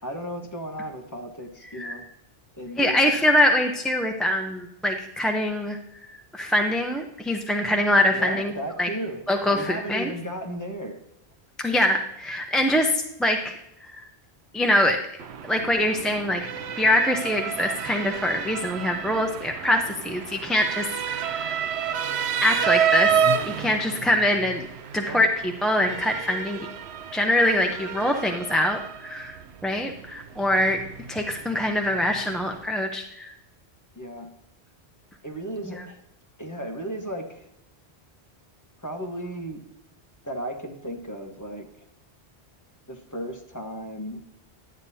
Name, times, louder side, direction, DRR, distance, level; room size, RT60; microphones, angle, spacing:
voice 1, 0.0-2.0 2.6-3.1 8.1-9.2 9.5-11.0 25.0-25.3 33.9-34.3 35.2-36.0 36.4-37.5 38.8-39.6 40.2-41.7 42.9-44.2, right 1 dB, 15° left, 1 dB, 1.2 m, -35 dB
voice 2, 2.8-5.8 6.3-8.5 8.8-8.9 9.3-10.1 11.6-13.9 14.5-15.0 15.4-16.4 16.8-21.5 22.4-23.1 23.4-24.7 24.9-26.7 27.1-29.4 29.6-30.8 31.1-33.3, left 1 dB, ahead, 2 dB, 0.5 m, -24 dB
Motor vehicle (road) / Siren, 15.2-32.6, right 7 dB, 80° right, 0.9 m, -30 dB
11.5 x 8.8 x 2.8 m, 0.84 s
omnidirectional pair, 1.1 m